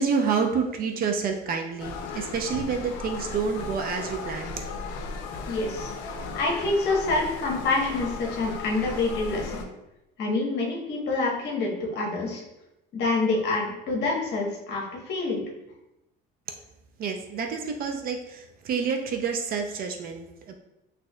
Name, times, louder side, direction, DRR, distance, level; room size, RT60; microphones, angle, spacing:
voice 1, 0.0-4.6 17.0-20.5, right 5 dB, 45° right, 4 dB, 0.4 m, -28 dB
sound 1, 1.8-9.7, left 4 dB, 85° left, 0.5 m, -36 dB
voice 2, 5.5-5.9 6.3-9.6 10.2-12.4 12.9-15.4, left 3 dB, 55° left, -1 dB, 1.1 m, -27 dB
4.3 x 2.7 x 2.2 m, 0.89 s
cardioid pair, 120°, 21 cm